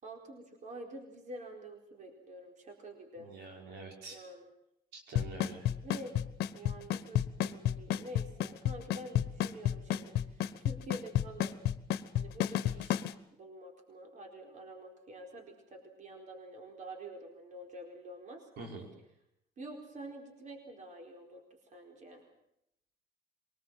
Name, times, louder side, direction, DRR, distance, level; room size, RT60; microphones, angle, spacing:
voice 1, 0.0-3.3 4.1-4.5 5.8-6.2 6.5-11.7 12.1-13.0 13.4-18.5 19.6-21.4 21.7-22.2, right 1 dB, 45° right, 3 dB, 4.5 m, -48 dB
voice 2, 3.2-4.2 4.9-5.7 18.6-18.9, right 3 dB, 85° right, 2 dB, 5.6 m, -46 dB
Drum kit / Snare drum / Bass drum, 5.2-13.1, left 12 dB, 70° left, 1.1 m, -29 dB
23.5 x 20.0 x 7.6 m, 0.79 s
cardioid pair, 110°, 17 cm